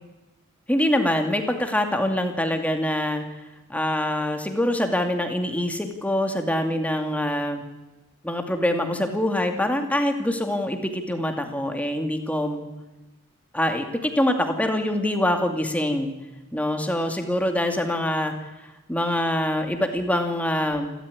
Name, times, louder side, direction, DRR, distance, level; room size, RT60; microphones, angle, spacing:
voice 1, 0.7-3.2 3.7-7.6 8.2-12.7 13.5-16.1 16.5-18.3 18.9-20.9, left 1 dB, 5° left, 5 dB, 2.5 m, -24 dB
28.0 x 13.5 x 9.8 m, 1.1 s
head